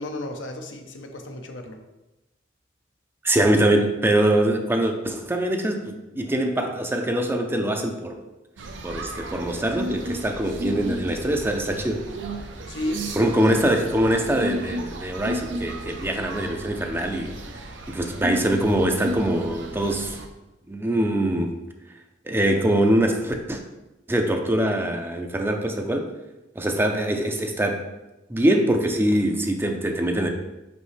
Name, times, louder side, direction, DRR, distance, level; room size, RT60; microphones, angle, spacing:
voice 1, 0.0-1.8 12.7-13.3, left 1 dB, 75° left, 4 dB, 0.8 m, -33 dB
voice 2, 3.2-8.1 8.8-12.0 13.2-17.4 17.9-20.2 20.7-21.6 22.2-23.6 24.1-26.1 26.6-27.9 28.3-30.3, right 1 dB, 10° right, 4 dB, 0.5 m, -23 dB
sound 1, 8.6-20.3, right 1 dB, 70° right, 0.6 m, -33 dB
5.7 x 5.3 x 3.2 m, 1.0 s
head